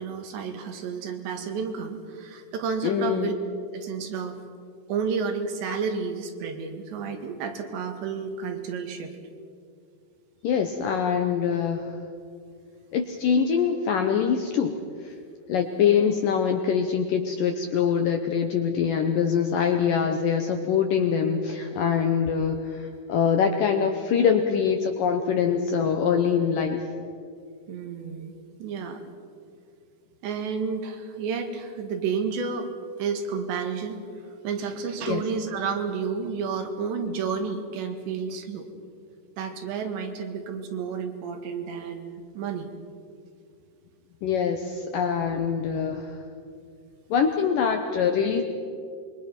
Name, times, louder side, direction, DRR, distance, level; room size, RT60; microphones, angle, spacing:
voice 1, 0.0-3.3 3.7-4.4 4.9-9.1 27.7-28.3 28.6-29.0 30.2-32.7 33.0-34.0 34.4-38.7 39.4-42.7, right 5 dB, 75° right, 5 dB, 4.0 m, -31 dB
voice 2, 2.8-3.3 10.4-12.0 12.9-14.8 15.0-15.1 15.5-26.9 35.1-35.2 44.2-46.2 47.1-48.4, left 7 dB, 75° left, 5 dB, 2.1 m, -24 dB
26.5 x 23.0 x 6.0 m, 2.3 s
omnidirectional pair, 5.2 m